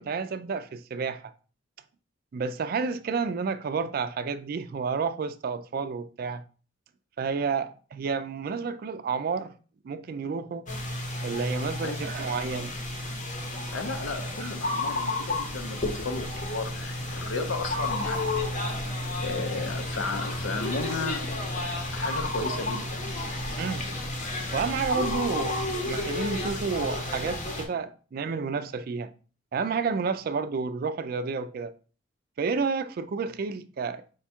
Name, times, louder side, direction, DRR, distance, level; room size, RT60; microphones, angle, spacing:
voice 1, 0.0-1.3 2.3-6.4 7.2-9.5 9.8-10.7 11.2-12.7 14.4-14.5 23.6-23.9 24.5-29.1 29.5-31.7 32.4-34.0, right 5 dB, 50° right, 0.3 m, -30 dB
sound 1, 10.7-27.6, left 2 dB, 40° left, 0.8 m, -32 dB
voice 2, 13.7-18.5 18.8-18.9 19.2-23.0, left 3 dB, 80° left, 0.7 m, -34 dB
5.0 x 2.3 x 4.3 m
head